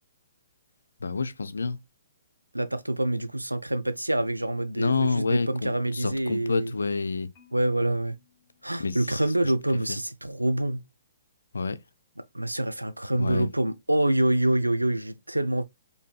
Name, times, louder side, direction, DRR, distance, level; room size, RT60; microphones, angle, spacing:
voice 1, 1.0-1.8 4.7-7.3 8.8-9.2 9.9-10.0 11.5-11.8 13.1-13.5, left 4 dB, 70° left, 0.4 m, -28 dB
voice 2, 2.5-6.7 7.5-8.2 8.6-10.8 12.3-15.6, right 1 dB, 90° right, 0.5 m, -26 dB
Marimba xylophone, 7.3-9.5, left 8 dB, 30° left, 1.7 m, -62 dB
4.6 x 2.6 x 2.3 m
figure-of-eight pair, 125°, 0 cm